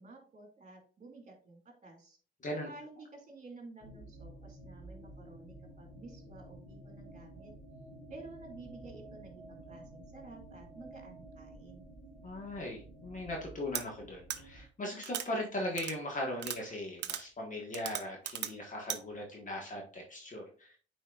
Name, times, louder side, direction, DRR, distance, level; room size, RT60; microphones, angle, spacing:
voice 1, 0.0-2.2 2.6-7.5 8.1-11.9, right 3 dB, 40° right, 2 dB, 2.5 m, -52 dB
sound 1, 3.8-14.6, right 1 dB, 20° left, 1.6 m, -51 dB
voice 2, 12.2-20.8, left 1 dB, 40° left, 0 dB, 1.6 m, -39 dB
sound 2, 13.7-13.8 14.3-14.4 15.0-15.3 15.8-15.9 16.4-16.6 17.0-17.2 17.7-18.5 18.9-19.0, right 10 dB, 60° right, 0.6 m, -37 dB
8.9 x 4.3 x 2.5 m, 0.41 s
cardioid pair, 90°, 20 cm